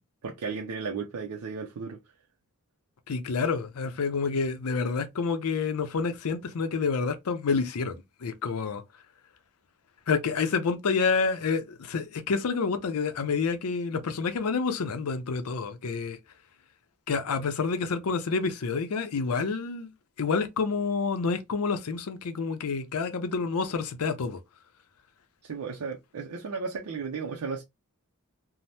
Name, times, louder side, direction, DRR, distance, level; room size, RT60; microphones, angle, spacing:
voice 1, 0.2-2.0 25.4-27.6, right 5 dB, 80° right, 0.5 m, -34 dB
voice 2, 3.1-8.8 10.1-16.2 17.1-19.9 20.2-24.4, left 5 dB, 75° left, 0.5 m, -28 dB
2.7 x 2.0 x 3.2 m
head